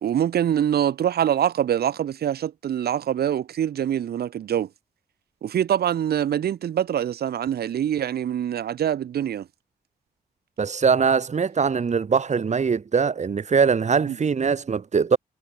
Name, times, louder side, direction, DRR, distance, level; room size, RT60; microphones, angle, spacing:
voice 1, 0.0-4.7 5.4-9.5 14.1-14.2, right 10 dB, 80° right, 4.2 m, -24 dB
voice 2, 10.6-15.2, right 6 dB, 45° right, 4.0 m, -22 dB
cardioid pair, 90°, 16 cm